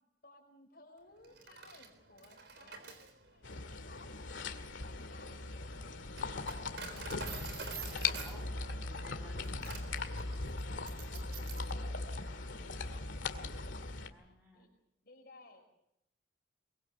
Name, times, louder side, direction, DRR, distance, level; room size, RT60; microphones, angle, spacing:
voice 1, 0.2-3.0 3.3-3.5 3.8-4.1 4.8-5.3 6.4-7.2 8.3-8.7 9.5-9.8 10.6-13.1 14.5-14.7 15.0-15.6, left 2 dB, 55° left, 2 dB, 5.4 m, -59 dB
Coin (dropping), 1.2-11.7, right 5 dB, 65° right, 4.1 m, -48 dB
sound 1, 3.4-14.1, left 3 dB, 90° left, 2.1 m, -39 dB
voice 2, 7.5-8.5 8.7-9.6 14.1-14.7, equal, 10° right, 1 dB, 7.1 m, -58 dB
23.0 x 23.0 x 6.7 m, 0.78 s
head